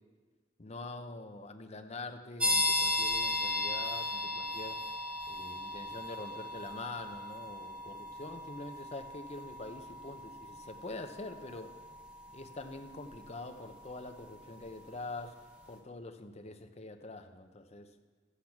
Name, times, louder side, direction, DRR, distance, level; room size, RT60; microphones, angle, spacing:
voice 1, 0.6-4.8 5.3-11.7 12.3-15.4 15.7-17.9, left 2 dB, 35° left, 7 dB, 0.8 m, -45 dB
sound 1, 2.4-14.9, left 2 dB, 5° right, 1.5 m, -37 dB
13.5 x 8.3 x 5.9 m, 1.5 s
head